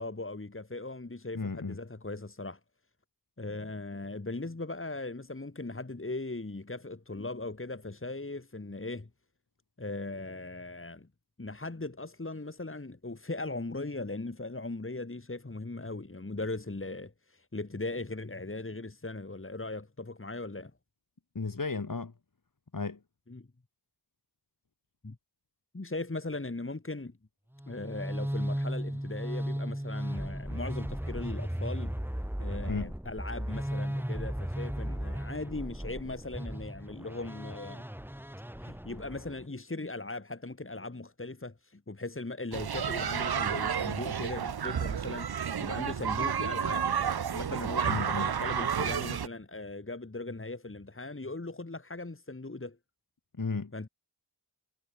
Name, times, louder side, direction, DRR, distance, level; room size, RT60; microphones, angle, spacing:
voice 1, 0.0-2.6 3.4-9.1 9.8-11.1 11.4-20.7 23.3-23.5 25.0-25.2 25.7-27.2 27.7-32.0 32.4-37.8 38.6-46.9 47.3-52.8 53.7-53.9, left 2 dB, 30° left, 4.3 m, -39 dB
voice 2, 1.3-1.8 21.3-22.1 22.7-23.0 32.6-32.9 47.8-48.3 53.4-53.9, left 4 dB, 45° left, 4.7 m, -34 dB
sound 1, 27.6-39.4, equal, 5° right, 4.7 m, -36 dB
sound 2, 42.5-49.3, right 7 dB, 60° right, 1.0 m, -31 dB
wide cardioid pair, 75°, 44 cm